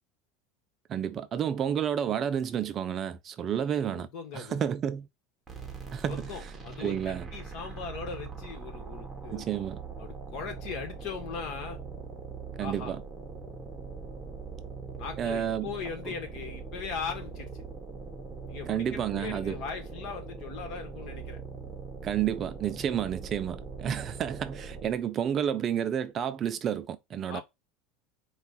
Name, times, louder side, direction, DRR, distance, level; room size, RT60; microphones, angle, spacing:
voice 1, 0.9-4.1 4.3-5.1 5.9-6.5 6.8-7.3 9.3-9.8 12.6-13.0 15.2-15.7 16.1-16.2 18.6-19.6 22.0-27.4, right 9 dB, 30° right, 0.4 m, -30 dB
voice 2, 3.9-4.6 6.1-9.5 10.0-11.8 12.6-12.9 15.0-17.6 18.5-21.4 27.3-27.4, left 6 dB, 50° left, 1.6 m, -39 dB
sound 1, 5.5-25.1, right 4 dB, 10° right, 1.0 m, -42 dB
4.5 x 2.4 x 4.1 m
supercardioid pair, 145°, 0 cm